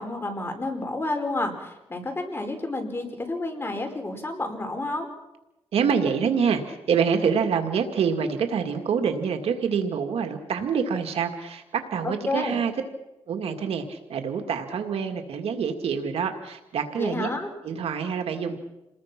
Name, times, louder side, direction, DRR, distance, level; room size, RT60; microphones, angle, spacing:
voice 1, 0.0-5.1 12.0-12.6 17.0-17.5, left 2 dB, 25° left, 3 dB, 5.2 m, -30 dB
voice 2, 5.7-12.7 13.3-17.3 17.6-18.6, right 6 dB, 85° right, 6 dB, 2.0 m, -26 dB
28.5 x 20.5 x 5.9 m, 0.95 s
cardioid pair, 85°, 10 cm